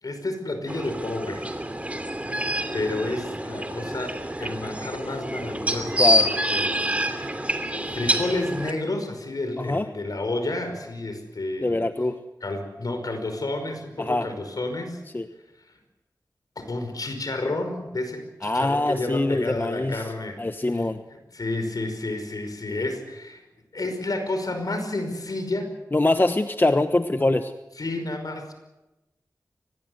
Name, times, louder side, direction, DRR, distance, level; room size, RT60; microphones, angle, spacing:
voice 1, 0.0-1.7 2.2-4.1 4.4-11.9 12.4-15.0 16.6-20.4 21.1-23.4 23.7-25.7 27.8-28.5, left 2 dB, 65° left, 7 dB, 5.3 m, -31 dB
sound 1, 0.7-8.7, equal, 20° right, 2.9 m, -27 dB
voice 2, 6.0-6.3 9.6-9.9 11.6-12.2 14.0-14.3 15.1-15.3 18.4-20.1 20.4-21.0 25.9-27.5, left 2 dB, 30° left, 9 dB, 1.1 m, -23 dB
24.5 x 19.5 x 8.1 m, 1.0 s
wide cardioid pair, 60°, 7 cm